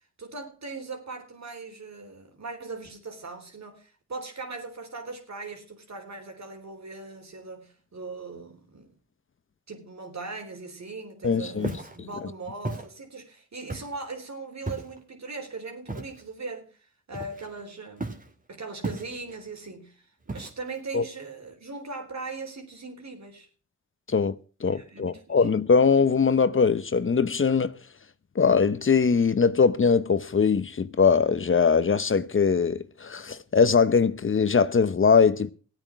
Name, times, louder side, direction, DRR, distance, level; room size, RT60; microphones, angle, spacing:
voice 1, 0.2-8.9 9.7-16.7 17.1-18.2 18.5-23.5 24.7-25.5, right 3 dB, 60° right, 3.6 m, -39 dB
voice 2, 11.2-11.7 20.9-21.0 24.1-27.7 28.4-35.5, left 5 dB, 40° left, 0.8 m, -21 dB
Walk footsteps, 11.6-12.0 12.6-12.9 13.7-14.0 14.7-15.0 15.9-16.2 17.1-17.6 18.0-18.3 18.8-19.4 20.3-20.8, right 2 dB, 25° right, 2.3 m, -35 dB
15.5 x 8.9 x 5.9 m
cardioid pair, 50°, 30 cm